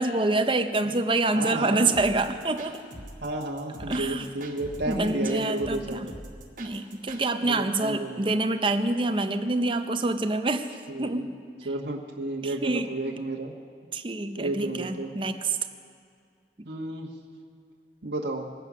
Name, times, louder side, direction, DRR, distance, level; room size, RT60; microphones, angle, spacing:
voice 1, 0.0-2.8 3.9-4.3 4.9-6.1 6.6-10.7 11.0-11.4 12.4-12.9 13.9-15.6, right 2 dB, 30° right, 8 dB, 0.6 m, -26 dB
voice 2, 1.3-2.0 3.2-6.1 7.4-8.2 10.9-11.2 11.6-13.5 14.4-15.1 16.6-17.1 18.0-18.5, right 2 dB, 70° right, -2 dB, 1.3 m, -32 dB
sound 1, 1.9-7.2, right 1 dB, 45° right, 1.5 m, -43 dB
22.0 x 8.3 x 6.1 m, 2.3 s
head